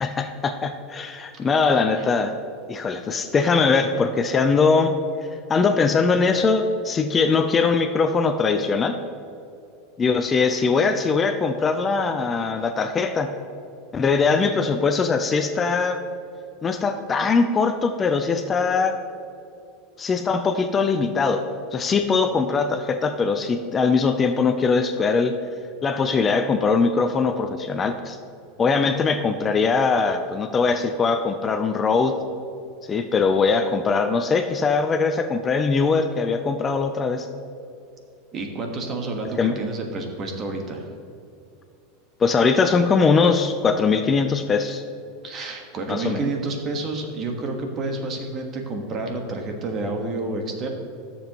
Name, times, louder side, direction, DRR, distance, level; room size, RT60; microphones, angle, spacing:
voice 1, 0.0-2.3 2.7-5.0 5.5-9.0 10.0-13.3 13.9-16.0 16.6-19.0 20.0-21.4 21.7-25.3 25.8-28.2 28.6-32.2 32.9-37.3 39.4-39.6 42.2-44.8 45.9-46.3, left 4 dB, 25° left, 8 dB, 0.5 m, -21 dB
voice 2, 1.7-2.0 38.3-40.8 45.2-50.7, right 2 dB, 35° right, 3 dB, 1.4 m, -29 dB
13.5 x 7.0 x 3.0 m, 2.6 s
supercardioid pair, 125°, 0 cm